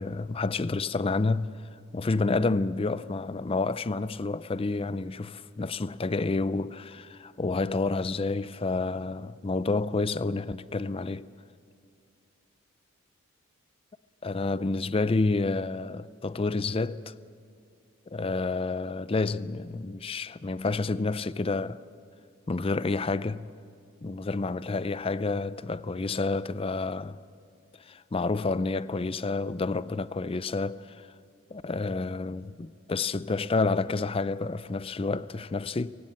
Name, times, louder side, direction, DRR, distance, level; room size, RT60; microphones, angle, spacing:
voice 1, 0.0-1.5 1.9-11.3 14.2-17.1 18.1-21.8 22.5-23.5 24.0-27.2 27.8-31.1 31.5-36.0, left 3 dB, 25° left, 0.4 m, -29 dB
26.5 x 16.5 x 7.5 m
head